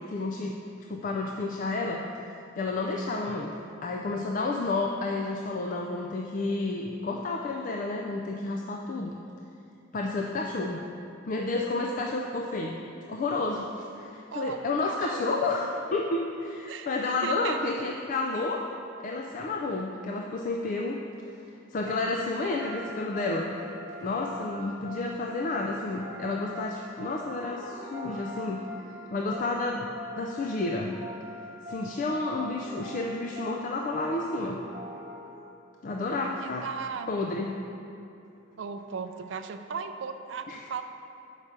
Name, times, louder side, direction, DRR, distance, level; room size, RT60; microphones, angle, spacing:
voice 1, 0.1-0.6 0.9-2.0 2.6-3.5 3.8-9.2 9.9-10.8 11.3-12.8 13.1-18.6 19.0-21.0 21.7-23.5 24.0-28.6 29.1-29.9 30.2-31.0 31.7-34.6 35.8-36.7 37.1-37.6 40.5-40.6, left 2 dB, 40° left, 1 dB, 0.3 m, -30 dB
voice 2, 14.3-15.7 16.7-17.6 36.4-37.1 38.6-40.8, right 5 dB, 65° right, 8 dB, 0.4 m, -37 dB
sound 1, 21.9-35.7, left 1 dB, 20° right, 0.9 m, -43 dB
5.7 x 4.8 x 6.5 m, 2.7 s
head